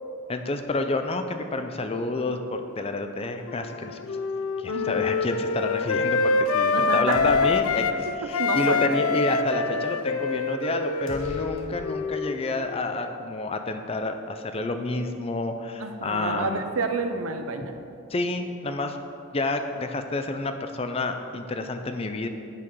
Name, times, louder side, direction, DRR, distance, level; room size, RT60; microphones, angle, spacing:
voice 1, 0.3-4.2 4.6-16.7 18.1-19.0 19.3-22.3, left 2 dB, 25° left, 7 dB, 0.4 m, -29 dB
Wind instrument woodwind instrument, 3.5-8.0 8.3-12.8, left 4 dB, 90° left, 0.4 m, -26 dB
voice 2, 4.7-5.0 6.7-7.2 8.1-9.0 15.8-17.7, right 3 dB, 75° right, 7 dB, 0.6 m, -30 dB
sound 1, 7.1-8.0 8.3-8.4 11.1-12.4, left 1 dB, 65° left, 1.0 m, -42 dB
8.7 x 6.1 x 4.6 m, 2.5 s
head